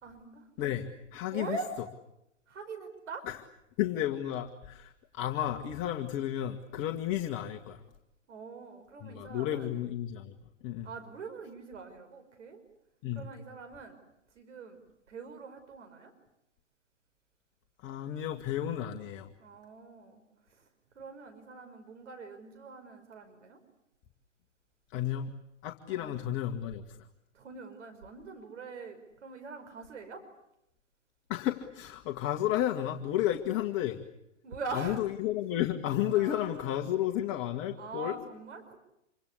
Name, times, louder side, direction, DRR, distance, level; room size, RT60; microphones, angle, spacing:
voice 1, 0.0-0.5 1.3-1.7 2.5-3.3 8.3-9.7 10.8-12.6 13.1-14.0 14.4-14.8 15.1-16.1 19.4-20.2 20.5-20.7 21.0-23.6 25.9-26.2 27.3-30.2 34.4-35.0 36.1-36.5 37.8-38.8, right 4 dB, 65° right, 6 dB, 5.5 m, -43 dB
voice 2, 0.6-1.6 3.3-3.4 3.8-7.8 9.0-10.3 10.6-10.9 13.0-13.3 17.8-19.3 24.9-25.3 25.6-27.0 31.3-34.0 34.7-38.2, left 12 dB, 30° left, 4 dB, 1.8 m, -32 dB
27.5 x 25.0 x 8.3 m, 0.83 s
hypercardioid pair, 115°, 38 cm